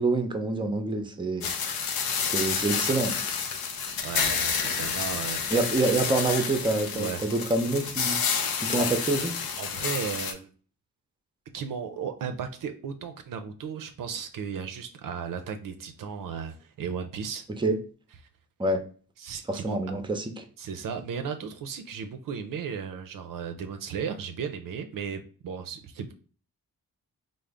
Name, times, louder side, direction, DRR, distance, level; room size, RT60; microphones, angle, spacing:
voice 1, 0.0-1.5 2.2-3.2 5.5-8.2 8.6-9.4 17.6-17.8 18.6-18.8 19.5-20.4, right 2 dB, 15° right, 7 dB, 0.6 m, -26 dB
sound 1, 1.4-10.3, left 6 dB, 85° left, 0.6 m, -29 dB
voice 2, 4.0-5.6 6.9-7.2 8.8-8.9 9.6-10.5 11.5-17.5 19.2-19.8 20.6-26.1, right 7 dB, 65° right, 7 dB, 0.5 m, -35 dB
3.7 x 2.0 x 3.4 m, 0.40 s
cardioid pair, 60°, 35 cm